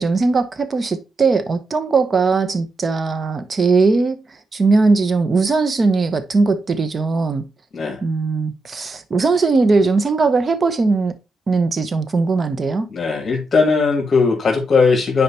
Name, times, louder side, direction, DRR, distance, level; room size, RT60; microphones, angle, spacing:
voice 1, 0.0-4.2 4.5-7.4 8.0-11.1 11.5-12.9, right 4 dB, 35° right, 1.0 m, -19 dB
voice 2, 12.9-15.2, left 4 dB, 40° left, 2.2 m, -18 dB
9.5 x 4.8 x 2.9 m
cardioid pair, 90°, 0 cm